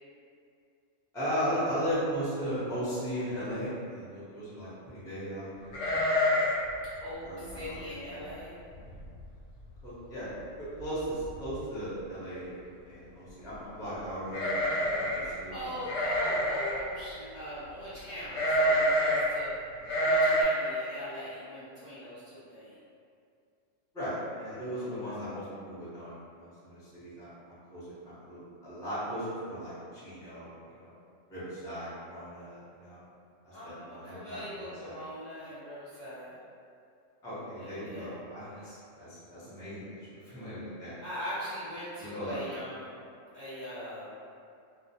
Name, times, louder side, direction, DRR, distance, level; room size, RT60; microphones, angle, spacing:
voice 1, 1.1-6.0 7.2-8.2 9.8-10.3 10.7-12.5 12.8-15.8 23.9-30.9 31.3-33.0 33.4-34.4 34.8-34.9 37.2-41.0 42.0-42.4, equal, 5° left, -12 dB, 0.5 m, -37 dB
sound 1, 5.7-6.7 6.9-7.0 7.5-7.8 8.3-8.4 8.7-9.2 9.6-9.7 10.8-10.9 11.2-11.6 14.3-15.3 15.9-16.8 18.3-19.3 19.8-20.4, equal, 90° left, 1.0 m, -27 dB
voice 2, 7.0-8.6 15.5-19.5 20.0-22.8 24.7-25.2 33.5-36.4 37.6-38.1 41.0-42.9 43.3-44.1, equal, 50° left, -14 dB, 0.6 m, -41 dB
2.4 x 2.0 x 2.7 m, 2.4 s
omnidirectional pair, 1.3 m